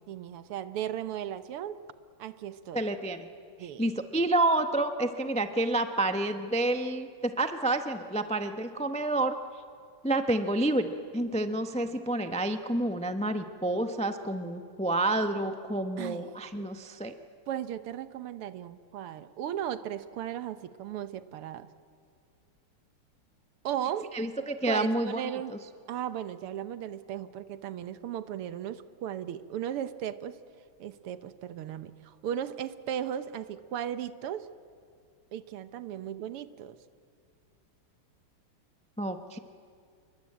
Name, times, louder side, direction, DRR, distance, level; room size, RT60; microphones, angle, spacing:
voice 1, 0.1-1.8 2.2-2.9 3.6-3.9 16.0-16.3 17.5-21.7 23.6-24.1 24.7-25.6 25.9-30.4 30.8-34.5 35.3-36.8, right 10 dB, 85° right, 13 dB, 1.9 m, -36 dB
voice 2, 2.7-3.3 3.8-9.3 10.0-10.9 11.1-17.1 24.1-25.2 25.5-25.6 39.0-39.4, right 2 dB, 10° left, 8 dB, 0.3 m, -29 dB
28.0 x 22.5 x 8.7 m, 2.3 s
omnidirectional pair, 2.4 m